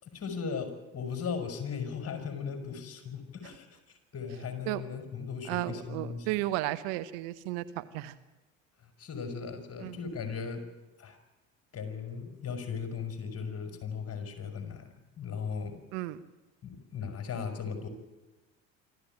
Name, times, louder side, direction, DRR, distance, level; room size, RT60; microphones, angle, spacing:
voice 1, 0.0-3.7 4.1-6.4 9.0-10.6 11.0-11.2 11.7-15.8 16.6-17.9, left 6 dB, 40° left, 6 dB, 5.4 m, -37 dB
voice 2, 5.5-8.1 9.8-10.0 15.9-16.2, right 16 dB, 65° right, 11 dB, 1.2 m, -33 dB
26.0 x 13.5 x 9.2 m, 1.1 s
figure-of-eight pair, 60°, 38 cm